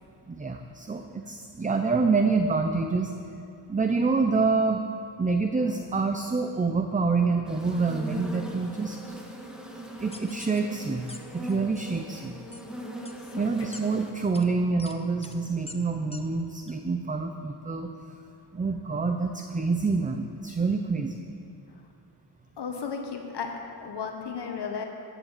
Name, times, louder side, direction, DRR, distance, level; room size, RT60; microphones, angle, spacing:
voice 1, 0.3-3.1 3.7-4.8 5.2-9.0 10.0-11.1 11.3-12.4 13.3-17.9 18.5-21.2, right 4 dB, 20° right, 6 dB, 0.6 m, -27 dB
sound 1, 7.4-14.1, equal, ahead, 1.8 m, -40 dB
sound 2, 10.1-10.6 11.1-11.2 11.5-11.8 12.5-12.6 13.0-13.1 13.7-13.8 14.3-14.4 14.8-14.9 15.2-15.3 15.7-15.8 16.1-16.2 16.7-16.8, left 3 dB, 15° left, 1.0 m, -43 dB
voice 2, 22.6-24.8, left 6 dB, 65° left, 3 dB, 1.5 m, -34 dB
14.5 x 10.0 x 7.4 m, 2.7 s
wide cardioid pair, 130°, 43 cm